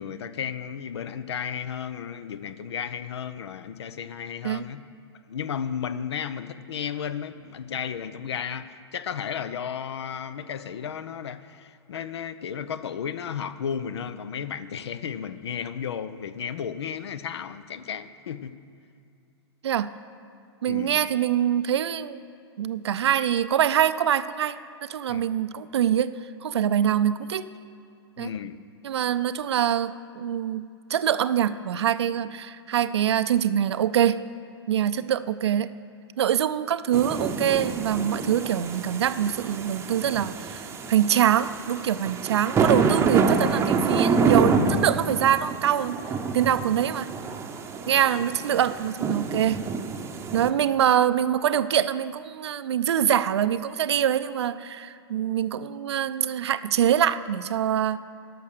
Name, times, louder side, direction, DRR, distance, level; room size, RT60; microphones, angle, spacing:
voice 1, 0.0-4.8 5.3-18.6 20.7-21.0 25.1-25.3 28.2-28.6 34.9-35.1 47.8-48.0, left 8 dB, 75° left, 14 dB, 0.6 m, -34 dB
voice 2, 20.6-22.2 22.6-26.1 26.4-27.5 28.2-28.3 28.8-30.6 30.9-34.2 34.7-35.7 36.2-46.0 46.3-47.1 47.9-49.7 50.3-58.0, right 10 dB, 75° right, 14 dB, 0.5 m, -24 dB
sound 1, 36.9-50.5, right 5 dB, 20° right, 0.7 m, -27 dB
11.5 x 6.3 x 6.5 m, 2.5 s
hypercardioid pair, 110°, 14 cm